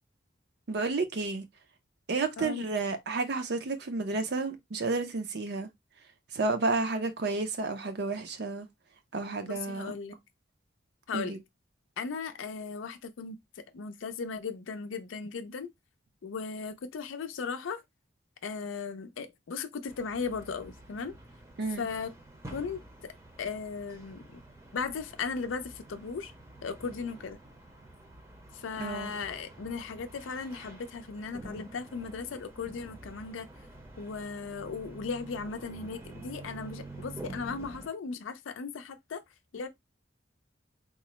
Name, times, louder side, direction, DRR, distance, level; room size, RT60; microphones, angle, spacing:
voice 1, 0.7-1.4 2.1-5.7 6.3-8.7 9.1-9.9 11.1-11.4 21.6-21.9 28.8-29.1, right 3 dB, 60° right, 0.5 m, -31 dB
voice 2, 9.4-10.2 11.1-11.4 12.0-15.7 16.2-17.8 18.4-21.2 21.8-22.1 22.5-23.1 23.4-24.4 24.7-26.3 26.6-27.4 28.5-33.5 34.0-39.2 39.5-39.7, left 5 dB, 90° left, 0.4 m, -37 dB
sound 1, 19.9-37.9, right 2 dB, 15° right, 0.6 m, -48 dB
3.7 x 2.0 x 2.9 m
head